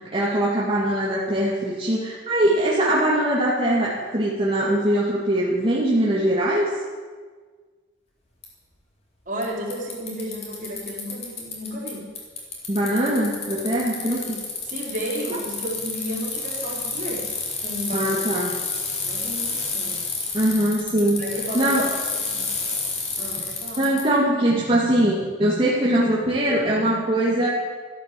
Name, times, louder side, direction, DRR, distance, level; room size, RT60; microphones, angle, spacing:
voice 1, 0.0-6.7 12.7-14.2 17.9-18.6 20.3-21.2 21.5-21.9 23.8-27.5, right 1 dB, 30° right, -5 dB, 2.2 m, -22 dB
Bicycle, 8.4-8.5 9.4-9.5 9.7-11.9 12.1-24.0, left 4 dB, 35° left, 3.7 m, -30 dB
voice 2, 9.3-12.1 13.9-17.3 17.6-18.4 19.0-20.0 21.2-21.7 22.2-22.5 23.2-23.9, equal, 45° right, -2 dB, 4.1 m, -33 dB
14.5 x 12.0 x 7.6 m, 1.5 s
head